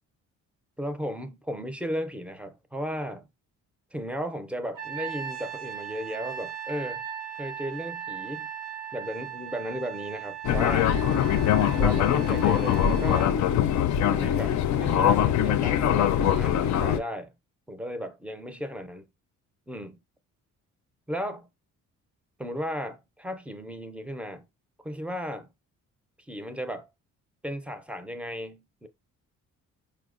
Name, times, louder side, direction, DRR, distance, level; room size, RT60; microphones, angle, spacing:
voice 1, 0.8-3.3 3.9-7.0 7.4-8.5 8.9-10.9 11.7-13.4 14.1-17.3 17.7-19.1 19.7-20.0 21.1-21.5 22.4-24.5 24.8-25.5 26.3-26.9 27.4-28.9, equal, 5° right, 0.5 m, -35 dB
Trumpet, 4.7-13.3, right 9 dB, 65° right, 0.8 m, -38 dB
Fixed-wing aircraft airplane, 10.4-17.0, left 10 dB, 60° left, 0.4 m, -23 dB
4.5 x 2.1 x 2.4 m
cardioid pair, 75°, 33 cm